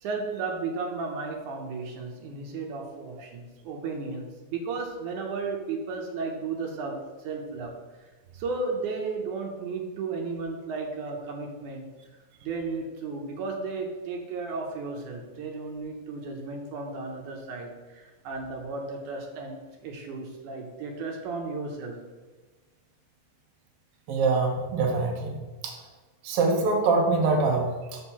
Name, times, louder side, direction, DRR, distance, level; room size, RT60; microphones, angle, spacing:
voice 1, 0.0-7.7 8.3-11.9 12.4-22.0, right 4 dB, 75° right, 2 dB, 2.3 m, -34 dB
voice 2, 24.1-25.4 25.6-25.7 26.2-28.0, right 3 dB, 60° right, 1 dB, 1.8 m, -24 dB
6.4 x 5.3 x 5.7 m, 1.3 s
omnidirectional pair, 3.6 m